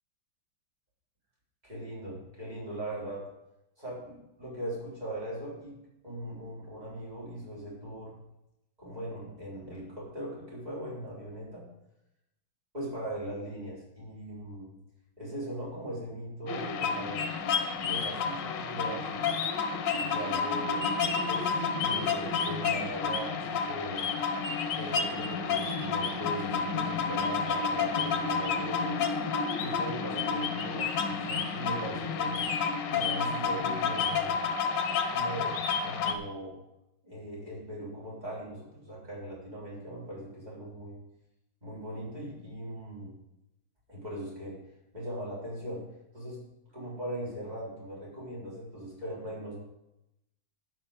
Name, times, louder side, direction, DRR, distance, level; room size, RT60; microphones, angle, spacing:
voice 1, 1.6-3.3 3.8-5.8 6.0-8.2 8.8-11.7 12.7-14.7 15.2-17.2 17.8-19.3 20.0-20.9 21.3-24.1 24.7-28.9 29.6-32.3 32.9-34.4 35.1-36.6 37.0-41.0 41.6-43.2 43.9-44.6 44.9-45.9 46.1-46.4 46.7-49.6, right 1 dB, 20° right, -5 dB, 4.1 m, -40 dB
sound 1, 16.5-36.1, left 5 dB, 60° left, 1.5 m, -30 dB
11.5 x 5.1 x 7.3 m, 0.87 s
omnidirectional pair, 2.3 m